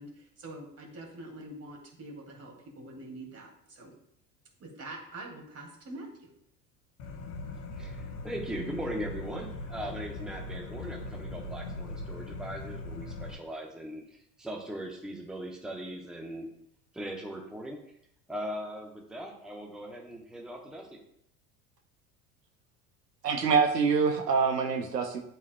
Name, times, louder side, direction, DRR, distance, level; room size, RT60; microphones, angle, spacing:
voice 1, 0.0-3.9 4.6-6.3, right 2 dB, 30° right, 0 dB, 2.4 m, -45 dB
sound 1, 7.0-13.3, left 2 dB, 60° left, 1.3 m, -40 dB
voice 2, 7.7-16.5 16.9-17.8 18.3-21.0, right 1 dB, ahead, 0 dB, 1.0 m, -39 dB
voice 3, 23.2-25.2, right 5 dB, 85° right, 5 dB, 0.8 m, -25 dB
11.0 x 4.4 x 2.3 m, 0.71 s
hypercardioid pair, 75°, 47 cm